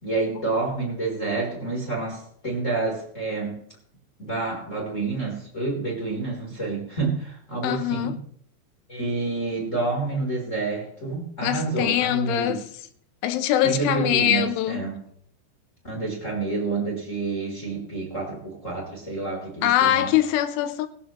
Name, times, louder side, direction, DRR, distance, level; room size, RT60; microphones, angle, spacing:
voice 1, 0.0-3.6 4.2-8.2 8.9-12.6 13.6-15.0 15.8-20.1, right 3 dB, 15° left, 3.3 m, -28 dB
voice 2, 7.6-8.2 11.4-12.7 13.2-14.8 19.6-20.9, left 12 dB, 85° left, 3.4 m, -23 dB
22.5 x 11.5 x 3.1 m
omnidirectional pair, 5.5 m